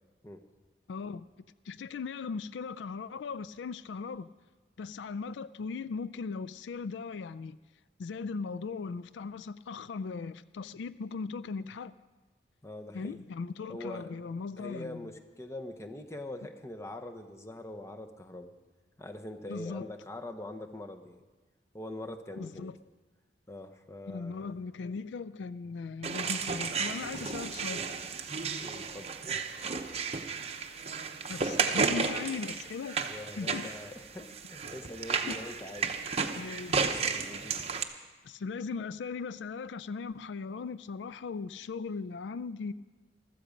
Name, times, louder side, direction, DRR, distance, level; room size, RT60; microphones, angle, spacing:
voice 1, 0.9-1.3 1.7-4.3 4.8-7.6 8.0-11.9 12.9-15.1 19.5-19.9 22.4-22.8 24.1-28.0 31.3-33.0 33.4-33.7 35.3-35.4 36.3-37.2 38.2-42.7, left 5 dB, 85° left, 0.4 m, -38 dB
voice 2, 12.6-13.2 13.7-14.1 14.6-18.5 19.0-21.2 21.7-22.7 23.5-24.5 28.4-29.2 33.1-36.0 36.8-37.8, left 1 dB, 15° left, 0.8 m, -43 dB
sound 1, 26.0-37.8, right 5 dB, 35° right, 0.8 m, -33 dB
15.5 x 13.0 x 5.2 m
head